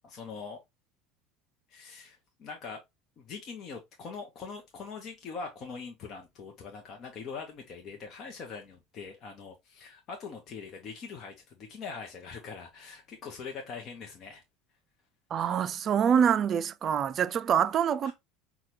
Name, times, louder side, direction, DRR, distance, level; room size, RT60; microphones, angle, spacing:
voice 1, 0.0-0.6 1.7-2.8 3.2-14.4 18.0-18.1, left 5 dB, 45° left, 0.8 m, -42 dB
voice 2, 15.3-18.1, right 8 dB, 40° right, 0.4 m, -25 dB
5.6 x 2.3 x 3.1 m
supercardioid pair, 105°, 0 cm